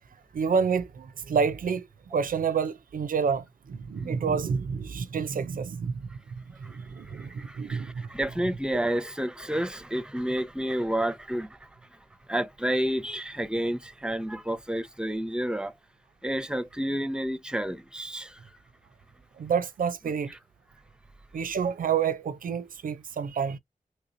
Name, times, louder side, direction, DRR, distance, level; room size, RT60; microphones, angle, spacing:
voice 1, 0.3-8.1 19.4-20.4 21.3-23.6, right 6 dB, 80° right, 0.4 m, -29 dB
voice 2, 6.6-11.7 12.3-15.7 16.2-18.4, right 1 dB, 5° right, 0.6 m, -30 dB
3.2 x 2.9 x 2.5 m
wide cardioid pair, 80°, 14 cm